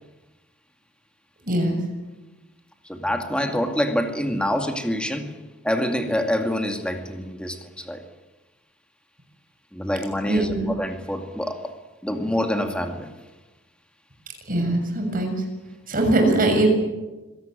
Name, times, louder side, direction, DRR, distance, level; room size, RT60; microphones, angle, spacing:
voice 1, 1.5-1.8 10.2-10.7 14.5-15.3 15.9-16.7, right 2 dB, 40° right, 3 dB, 6.8 m, -21 dB
voice 2, 2.9-5.3 5.6-8.0 9.7-11.6 12.0-13.1, equal, 5° left, 5 dB, 2.4 m, -26 dB
26.5 x 17.5 x 9.2 m, 1.2 s
head